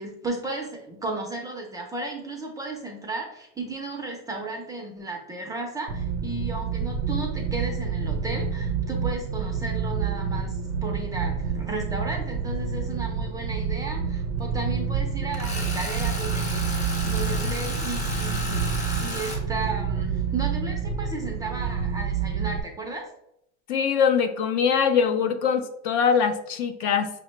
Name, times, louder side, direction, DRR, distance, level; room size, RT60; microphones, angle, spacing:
voice 1, 0.0-18.7 19.0-23.1, right 3 dB, 10° right, 1 dB, 0.4 m, -34 dB
sound 1, 5.9-22.6, right 6 dB, 80° right, 0.5 m, -28 dB
Tools, 15.3-19.4, left 1 dB, 20° left, 0.8 m, -34 dB
voice 2, 23.7-27.1, left 6 dB, 50° left, 8 dB, 0.5 m, -22 dB
5.7 x 2.1 x 3.1 m, 0.77 s
supercardioid pair, 130°, 36 cm